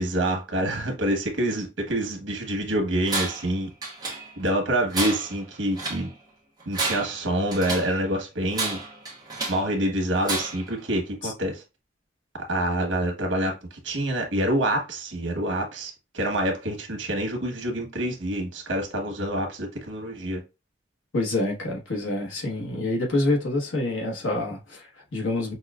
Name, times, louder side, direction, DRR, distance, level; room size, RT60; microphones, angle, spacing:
voice 1, 0.0-3.7 4.4-6.1 6.6-8.8 9.5-11.6 12.5-20.4, right 1 dB, 75° right, 1.2 m, -27 dB
Tools, 3.1-3.5 3.8-4.5 4.9-6.1 6.6-8.0 8.5-9.7 10.2-10.7, right 3 dB, 20° right, 1.0 m, -31 dB
voice 2, 21.1-25.5, left 2 dB, 85° left, 1.2 m, -27 dB
5.5 x 2.3 x 2.3 m
head